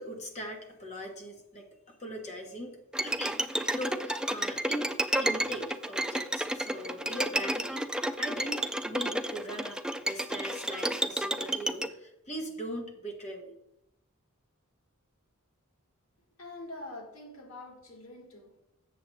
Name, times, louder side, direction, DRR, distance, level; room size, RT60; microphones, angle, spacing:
voice 1, 0.0-4.9 5.2-7.9 8.2-9.8 10.1-13.5, equal, 35° left, 1 dB, 1.6 m, -40 dB
Bowed string instrument, 2.9-11.9, right 1 dB, 5° right, 0.3 m, -31 dB
voice 2, 16.4-18.6, left 2 dB, 70° left, -1 dB, 2.4 m, -45 dB
8.0 x 6.9 x 3.4 m, 0.85 s
head